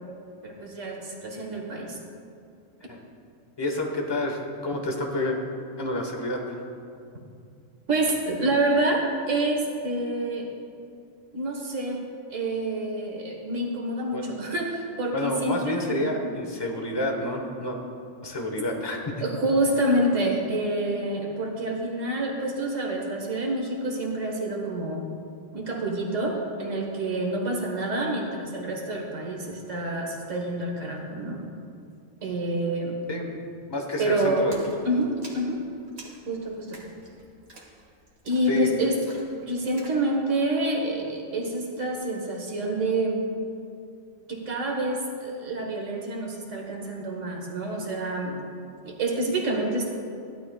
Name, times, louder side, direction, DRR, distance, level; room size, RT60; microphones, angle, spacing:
voice 1, 0.4-2.0 7.9-10.5 11.3-12.0 12.3-16.1 19.2-25.0 25.5-31.4 32.2-33.0 33.4-33.5 34.0-34.5 34.8-35.6 36.3-36.8 38.3-39.0 39.5-43.2 44.3-48.4 48.8-49.9, right 1 dB, 70° right, 0 dB, 1.8 m, -27 dB
voice 2, 3.6-5.4 5.8-6.6 14.1-14.3 15.1-17.8 18.2-19.3 33.1-33.3 33.7-34.6 38.5-38.7, left 1 dB, 20° left, 2 dB, 1.1 m, -29 dB
Splash splatter, 34.5-40.1, right 2 dB, 85° right, 2.0 m, -49 dB
14.5 x 11.5 x 2.3 m, 2.4 s
omnidirectional pair, 1.4 m